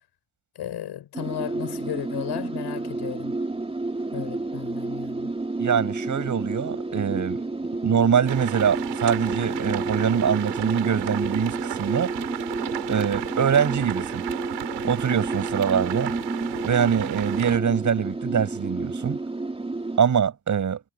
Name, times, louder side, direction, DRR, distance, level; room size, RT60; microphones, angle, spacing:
voice 1, 0.5-3.4 4.1-5.3, left 11 dB, 55° left, 6.4 m, -34 dB
sound 1, 1.1-20.0, right 2 dB, 10° right, 3.6 m, -31 dB
voice 2, 5.6-7.4 7.8-12.1 12.9-14.2 14.8-16.1 16.6-19.2 20.0-20.8, right 7 dB, 40° right, 7.9 m, -23 dB
sound 2, 8.3-17.6, right 15 dB, 70° right, 7.7 m, -34 dB
supercardioid pair, 95°, 46 cm